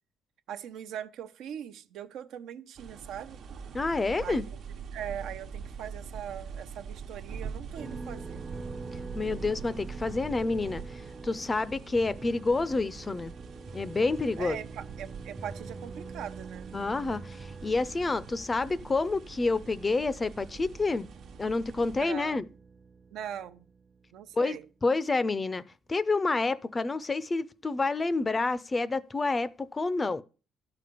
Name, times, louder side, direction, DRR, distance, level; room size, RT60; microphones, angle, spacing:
voice 1, 0.5-3.4 4.2-4.6 4.9-8.4 14.4-16.7 21.9-22.4 23.1-23.6 24.1-24.7, right 9 dB, 75° right, 0.8 m, -41 dB
sound 1, 2.8-22.0, right 6 dB, 60° right, 1.0 m, -44 dB
voice 2, 3.7-4.5 9.1-13.3 13.7-14.6 16.7-21.1 21.4-22.4 24.3-25.6 25.9-30.2, left 3 dB, 20° left, 0.5 m, -29 dB
sound 2, 7.8-24.3, right 3 dB, 20° right, 0.6 m, -45 dB
12.5 x 5.1 x 6.8 m
cardioid pair, 115°, 0 cm